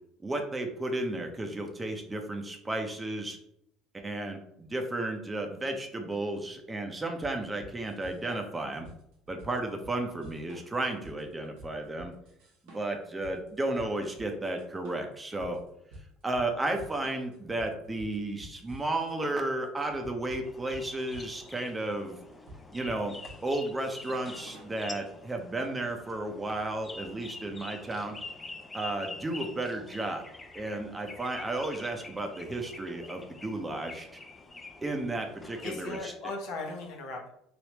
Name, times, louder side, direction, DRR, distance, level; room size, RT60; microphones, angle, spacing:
voice 1, 0.2-3.4 4.0-8.9 9.3-12.1 12.7-15.6 16.2-22.2 22.7-23.1 23.4-28.2 28.7-30.2 30.5-34.1 34.8-36.1, right 2 dB, 20° right, 4 dB, 0.7 m, -33 dB
sound 1, 7.2-24.8, right 1 dB, 75° right, 1.0 m, -50 dB
sound 2, 20.4-36.0, left 3 dB, 25° left, 0.5 m, -46 dB
voice 2, 35.6-37.3, left 2 dB, 65° left, 1 dB, 0.9 m, -37 dB
3.3 x 3.0 x 2.9 m, 0.76 s
hypercardioid pair, 70°, 0 cm